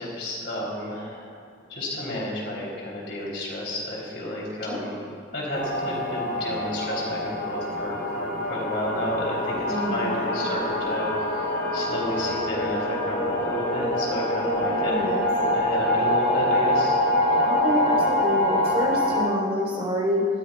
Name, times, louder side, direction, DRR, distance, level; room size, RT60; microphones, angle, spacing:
voice 1, 0.0-1.3 1.7-5.0 5.3-14.9 15.5-17.0, left 1 dB, 60° left, -4 dB, 3.5 m, -32 dB
sound 1, 5.5-19.2, left 1 dB, 80° left, 3.3 m, -25 dB
voice 2, 9.7-10.2 14.6-15.2 17.4-20.3, equal, 30° right, -4 dB, 4.0 m, -27 dB
19.5 x 15.0 x 2.4 m, 2.2 s
head